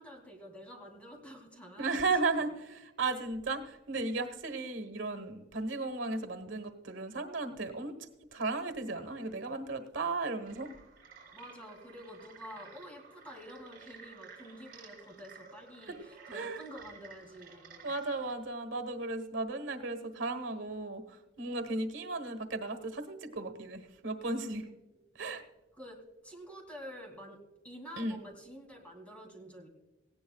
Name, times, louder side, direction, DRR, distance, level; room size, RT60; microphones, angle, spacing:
voice 1, 0.0-2.1 11.3-17.9 24.9-25.0 25.7-26.0 26.2-29.7, equal, 5° left, 1 dB, 2.7 m, -49 dB
voice 2, 1.8-7.9 8.3-10.7 15.9-16.0 16.3-16.6 17.8-24.7 25.2-25.4 28.0-28.2, right 3 dB, 85° right, 9 dB, 1.3 m, -35 dB
sound 1, 10.4-18.3, right 5 dB, 50° right, 4.5 m, -54 dB
18.5 x 17.0 x 2.4 m, 1.1 s
head